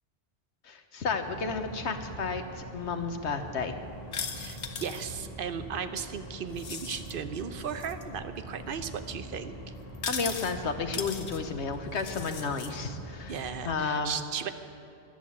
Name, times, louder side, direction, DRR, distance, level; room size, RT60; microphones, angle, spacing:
voice 1, 0.6-3.8 10.0-14.1, left 4 dB, 80° left, 7 dB, 1.4 m, -32 dB
sound 1, 1.2-13.7, right 1 dB, 35° left, 1.5 m, -44 dB
sound 2, 4.1-5.1 6.5-7.1 7.7-8.0 10.0-10.5 10.9-11.4 12.0-12.7, left 6 dB, 60° left, 1.1 m, -38 dB
voice 2, 4.3-9.5 13.3-14.5, right 7 dB, 55° right, 10 dB, 0.9 m, -36 dB
14.0 x 11.0 x 8.6 m, 2.7 s
omnidirectional pair, 1.1 m